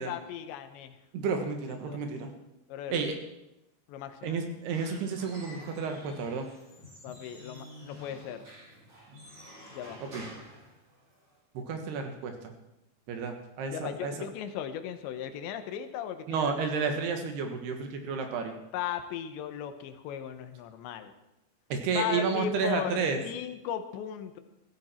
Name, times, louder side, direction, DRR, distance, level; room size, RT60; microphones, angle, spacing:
voice 1, 0.1-1.0 1.9-2.0 2.7-3.1 3.9-4.4 7.0-8.5 9.7-10.0 13.7-16.5 18.7-21.1 22.0-24.4, left 9 dB, 85° left, 9 dB, 3.3 m, -37 dB
voice 2, 1.1-2.3 2.9-3.2 4.2-6.5 10.1-10.3 11.6-12.3 13.1-14.1 16.3-18.6 21.7-23.2, right 5 dB, 70° right, 5 dB, 3.4 m, -31 dB
Squeak / Wood, 4.5-11.4, left 1 dB, 30° right, 8.3 m, -49 dB
16.0 x 14.5 x 4.5 m, 0.90 s
omnidirectional pair, 5.0 m